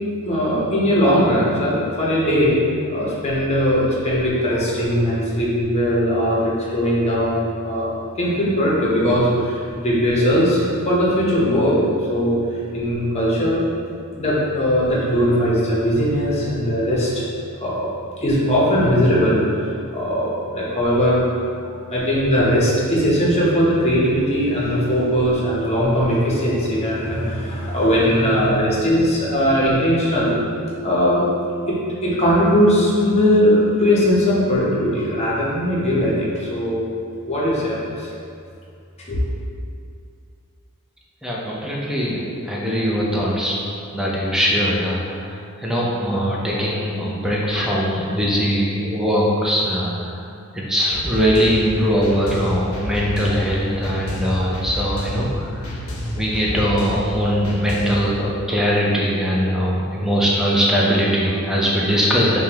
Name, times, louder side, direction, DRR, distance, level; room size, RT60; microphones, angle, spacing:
voice 1, 0.2-2.6 2.9-12.4 12.7-13.6 14.2-17.3 17.6-17.9 18.2-21.2 21.6-30.4 30.8-31.2 31.7-36.8 37.2-38.1 39.1-39.2, equal, 30° left, -6 dB, 0.8 m, -19 dB
voice 2, 41.2-43.5 43.9-50.2 50.5-55.6 56.1-62.4, equal, ahead, -5 dB, 0.5 m, -21 dB
sound 1, 50.9-58.1, equal, 65° left, 0.7 m, -29 dB
4.9 x 2.2 x 2.9 m, 2.4 s
head